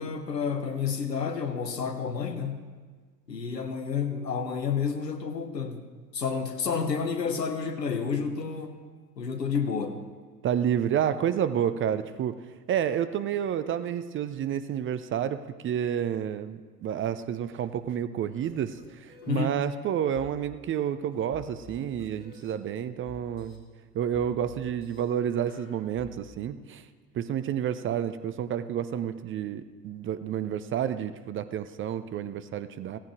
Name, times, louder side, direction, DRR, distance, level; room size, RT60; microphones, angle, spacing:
voice 1, 0.0-2.6 3.3-5.8 6.1-8.8 9.2-10.0 19.3-19.5, left 6 dB, 85° left, 7 dB, 1.2 m, -30 dB
voice 2, 10.4-12.4 12.7-23.6 23.9-26.8 27.1-33.0, right 9 dB, 25° right, 12 dB, 0.6 m, -30 dB
sound 1, 18.4-18.5 18.8-19.3 20.2-20.3 21.3-22.5 23.1-23.6 24.1-25.0 25.5-26.1, left 3 dB, 65° left, 2.8 m, -49 dB
17.0 x 14.5 x 3.1 m, 1.5 s
figure-of-eight pair, 70°, 48 cm